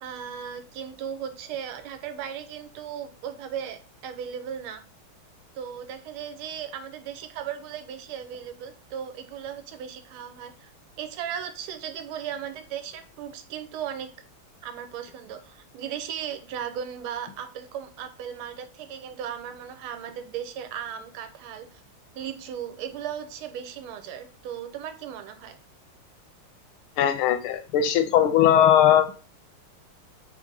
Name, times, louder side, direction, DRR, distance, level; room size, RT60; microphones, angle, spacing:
voice 1, 0.0-4.8 5.5-10.7 11.0-14.1 14.6-21.8 22.1-25.6, right 9 dB, 85° right, 8 dB, 1.5 m, -36 dB
voice 2, 27.0-29.1, left 10 dB, 80° left, 9 dB, 1.5 m, -19 dB
3.7 x 3.3 x 3.7 m, 0.36 s
omnidirectional pair, 2.3 m